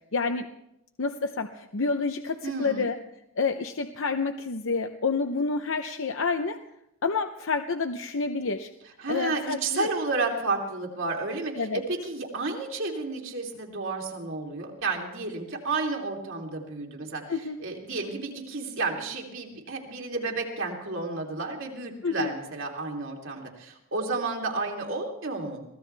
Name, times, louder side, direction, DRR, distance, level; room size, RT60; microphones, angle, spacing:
voice 1, 0.1-0.5 1.0-3.0 3.4-6.6 7.0-8.7 9.1-9.9 11.6-11.8 17.3-17.6 22.0-22.3, left 4 dB, 65° left, 7 dB, 0.8 m, -28 dB
voice 2, 2.4-2.9 9.0-25.6, right 3 dB, 65° right, 0 dB, 3.1 m, -31 dB
23.5 x 17.0 x 3.4 m, 0.82 s
head